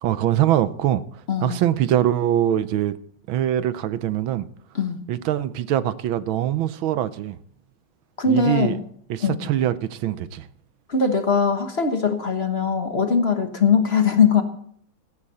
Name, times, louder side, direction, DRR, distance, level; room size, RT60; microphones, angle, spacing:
voice 1, 0.0-1.0 1.4-3.0 3.3-4.5 5.1-7.4 8.3-8.8 9.1-10.5, right 11 dB, 75° right, 1.5 m, -23 dB
voice 2, 1.3-1.6 4.7-5.0 8.2-8.8 9.2-9.4 10.9-14.4, left 5 dB, 35° left, 1.2 m, -21 dB
17.0 x 13.0 x 4.2 m
omnidirectional pair, 2.3 m